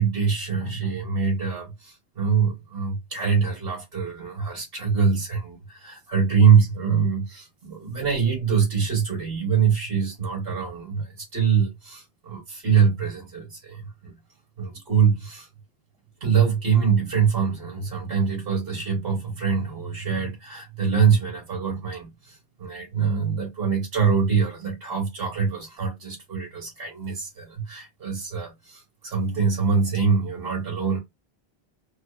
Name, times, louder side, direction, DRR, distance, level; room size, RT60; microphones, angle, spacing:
voice 1, 0.0-14.1 14.6-15.5 16.2-31.0, right 6 dB, 70° right, 1.2 m, -24 dB
2.4 x 2.3 x 2.3 m
omnidirectional pair, 1.0 m